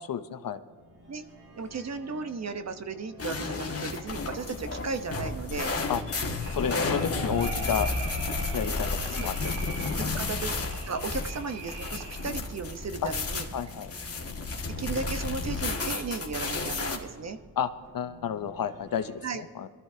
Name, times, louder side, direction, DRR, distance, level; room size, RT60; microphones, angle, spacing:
voice 1, 0.1-0.6 5.9-6.0 6.5-7.9 8.5-9.5 9.9-10.1 13.0-13.1 13.5-13.9 17.6-19.7, left 8 dB, 55° left, 11 dB, 0.8 m, -31 dB
sound 1, 0.7-19.2, right 1 dB, 70° right, 4.8 m, -53 dB
voice 2, 1.6-5.7 9.2-9.3 10.0-10.5 10.8-13.5 14.8-17.4 19.2-19.4, right 4 dB, 40° right, 8 dB, 1.0 m, -35 dB
sound 2, 3.2-17.0, left 3 dB, 35° left, 1.8 m, -32 dB
sound 3, 6.4-12.3, right 3 dB, 85° right, 2.2 m, -40 dB
22.0 x 13.5 x 2.8 m, 1.5 s
cardioid pair, 70°, 40 cm